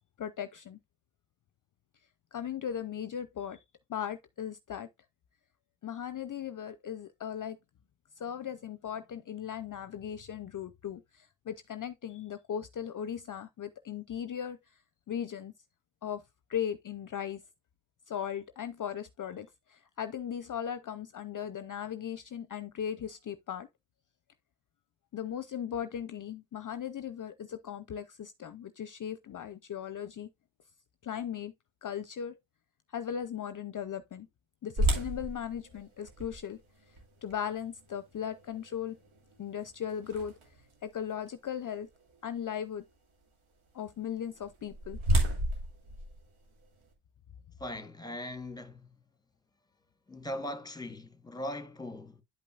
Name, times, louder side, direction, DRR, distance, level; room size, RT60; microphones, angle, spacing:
voice 1, 0.2-0.8 2.3-3.6 3.9-4.9 5.8-7.6 8.2-14.8 15.1-15.5 16.0-16.2 16.5-17.4 18.1-23.7 25.1-30.3 31.0-31.5 31.8-32.4 32.9-34.3 34.6-36.6 37.2-39.0 39.4-40.3 40.8-41.9 42.2-42.8 43.7-45.0, left 9 dB, 40° left, 0.6 m, -37 dB
sound 1, 34.8-40.7 41.3-41.4 42.0-42.2 44.3-46.9, right 1 dB, 90° right, 2.7 m, -33 dB
voice 2, 47.6-48.9 50.1-52.2, left 1 dB, 10° left, 1.2 m, -40 dB
11.0 x 5.3 x 2.4 m
cardioid pair, 75°, 48 cm